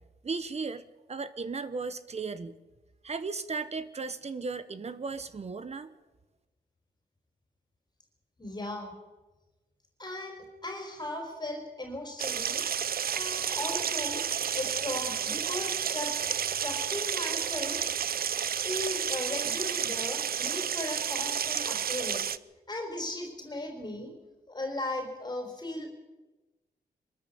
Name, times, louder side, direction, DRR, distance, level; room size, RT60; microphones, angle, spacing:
voice 1, 0.2-2.6 3.0-5.9, right 4 dB, 40° right, 14 dB, 1.0 m, -36 dB
voice 2, 8.4-8.9 10.0-12.6 13.1-14.3 14.5-16.1 16.6-17.9 18.6-22.2 22.7-24.1 24.5-25.9, left 1 dB, 25° left, 3 dB, 4.2 m, -37 dB
sound 1, 12.2-22.4, right 8 dB, 60° right, 0.6 m, -31 dB
23.0 x 13.5 x 8.5 m, 1.1 s
wide cardioid pair, 125°, 17 cm